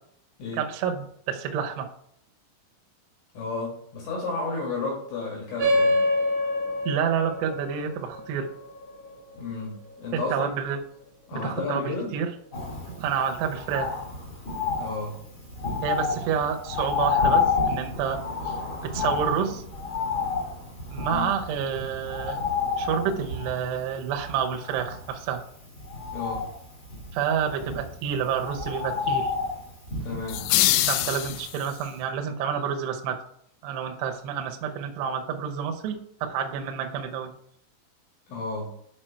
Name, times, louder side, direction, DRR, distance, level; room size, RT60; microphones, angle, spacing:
voice 1, 0.5-1.9 6.9-8.5 10.1-10.8 11.3-12.3 12.9-13.9 15.8-18.6 18.8-19.6 20.9-22.4 22.8-25.4 27.1-29.3 30.9-33.2 33.6-37.3, right 7 dB, 80° right, 4 dB, 2.4 m, -29 dB
voice 2, 3.3-6.0 9.4-10.5 11.3-12.1 14.8-15.2 21.1-21.3 26.1-26.5 30.0-30.4 38.3-38.7, left 3 dB, 70° left, -3 dB, 3.8 m, -32 dB
sound 1, 5.6-10.5, left 1 dB, 65° right, 1.6 m, -27 dB
Bird, 12.5-31.6 32.0-32.1, left 5 dB, 35° left, 1.2 m, -30 dB
sound 2, 30.3-31.9, left 14 dB, 90° left, 2.6 m, -24 dB
7.7 x 4.5 x 4.4 m, 0.69 s
omnidirectional pair, 5.9 m